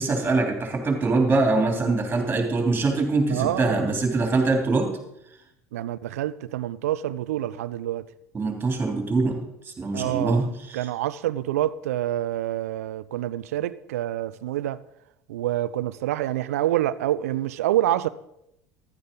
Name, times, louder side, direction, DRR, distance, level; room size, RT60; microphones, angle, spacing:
voice 1, 0.0-4.9 8.3-9.4 9.8-10.9, right 3 dB, 25° right, 3.2 m, -23 dB
voice 2, 3.3-3.9 5.7-8.1 9.9-14.8 15.3-18.1, right 13 dB, 70° right, 0.4 m, -27 dB
14.5 x 12.0 x 3.9 m
figure-of-eight pair, 70°, 8 cm